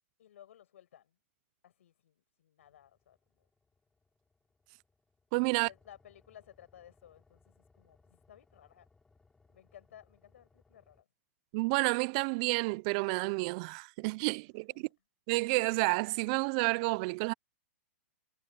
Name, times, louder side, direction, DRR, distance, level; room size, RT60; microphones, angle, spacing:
voice 1, 0.2-1.2 1.6-3.5 5.5-8.9 9.5-11.1 14.5-14.8, left 10 dB, 65° left, 5.9 m, -58 dB
sound 1, 2.6-11.0, left 3 dB, 5° left, 5.3 m, -69 dB
voice 2, 5.3-5.7 11.5-14.9 15.3-17.3, right 28 dB, 30° right, 0.3 m, -30 dB
hypercardioid pair, 160°, 8 cm